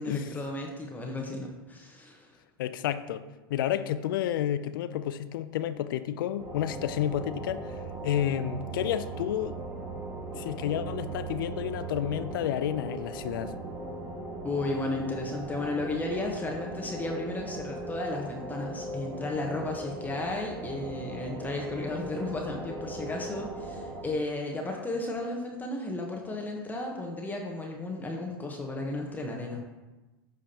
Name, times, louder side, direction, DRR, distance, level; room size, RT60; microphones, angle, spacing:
voice 1, 0.0-2.3 14.4-29.6, left 2 dB, 15° left, 1.1 m, -34 dB
voice 2, 2.6-7.7 8.0-9.6 10.3-13.6, left 11 dB, 65° left, 0.5 m, -30 dB
sound 1, 6.4-24.0, right 2 dB, 25° right, 2.0 m, -39 dB
12.0 x 5.0 x 2.9 m
hypercardioid pair, 95°, 12 cm